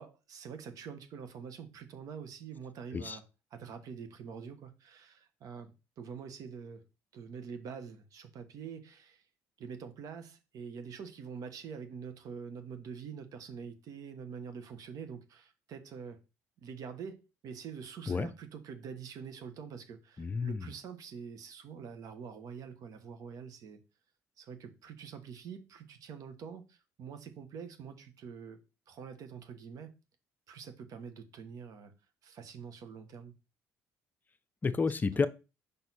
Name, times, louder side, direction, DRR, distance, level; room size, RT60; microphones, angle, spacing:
voice 1, 0.0-3.2 3.5-6.8 7.1-9.2 9.6-16.2 16.6-23.8 24.4-28.6 28.9-29.9 30.5-31.9 32.2-33.3 35.1-35.2, right 6 dB, 65° right, 1.1 m, -45 dB
voice 2, 20.2-20.7 34.6-35.3, left 4 dB, 30° left, 0.5 m, -30 dB
5.4 x 4.4 x 4.1 m
supercardioid pair, 85°, 6 cm